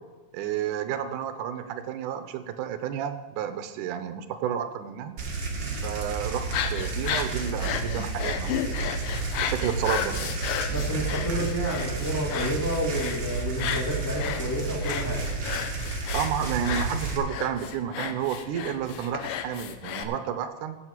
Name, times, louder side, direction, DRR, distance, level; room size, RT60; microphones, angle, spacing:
voice 1, 0.3-5.1 5.8-8.9 9.4-10.4 16.1-20.8, right 9 dB, 75° right, 9 dB, 2.1 m, -31 dB
sound 1, 5.2-17.2, right 4 dB, 40° right, 1.8 m, -31 dB
sound 2, 6.4-20.0, left 9 dB, 90° left, 2.5 m, -34 dB
voice 2, 10.7-15.2, equal, 5° left, -4 dB, 2.0 m, -30 dB
15.0 x 8.5 x 4.5 m, 1.2 s
omnidirectional pair, 4.0 m